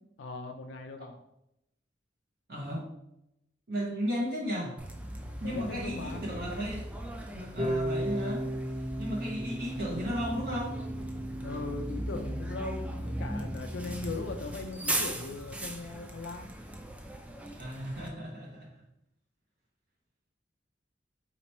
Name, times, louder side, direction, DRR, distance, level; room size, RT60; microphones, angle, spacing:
voice 1, 0.2-1.2 5.4-6.2 11.4-16.5, left 3 dB, 80° left, 4 dB, 0.4 m, -39 dB
voice 2, 2.5-2.9 3.7-4.8 5.4-6.9 7.3-8.5 9.0-10.8 17.6-18.7, equal, 55° right, -3 dB, 0.8 m, -34 dB
Bus, 4.8-18.1, right 1 dB, 5° right, 0.4 m, -38 dB
Harp, 7.6-13.6, right 1 dB, 30° right, 1.0 m, -36 dB
4.2 x 3.0 x 4.2 m, 0.83 s
head